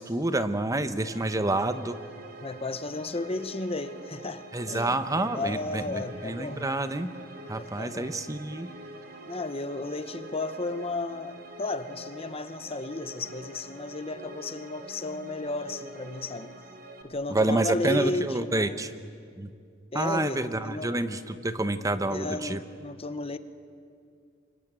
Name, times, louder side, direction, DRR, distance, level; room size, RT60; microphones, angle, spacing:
voice 1, 0.0-2.0 4.5-7.1 7.5-8.7 17.3-18.9 19.4-19.5 19.9-22.6, right 2 dB, 20° right, 0.9 m, -28 dB
sound 1, 1.0-17.0, right 2 dB, 55° right, 3.1 m, -46 dB
voice 2, 2.4-5.0 5.3-6.6 7.5-8.2 9.3-16.6 17.0-18.8 19.9-21.0 22.1-23.4, left 2 dB, 30° left, 0.9 m, -34 dB
26.0 x 23.5 x 8.9 m
head